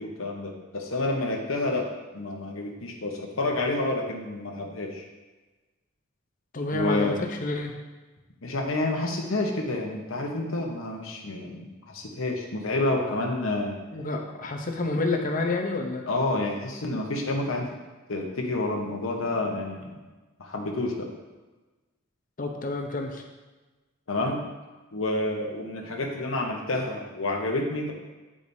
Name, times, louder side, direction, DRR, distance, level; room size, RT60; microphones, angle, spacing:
voice 1, 0.0-1.8 2.1-5.0 6.7-7.2 8.4-13.8 16.1-17.6 18.1-19.9 20.4-21.1 24.1-24.4 24.9-27.9, left 2 dB, 85° left, 1 dB, 1.0 m, -29 dB
voice 2, 6.5-7.7 13.9-16.1 22.4-23.2, left 2 dB, 40° left, 3 dB, 0.7 m, -29 dB
8.7 x 4.9 x 2.7 m, 1.2 s
head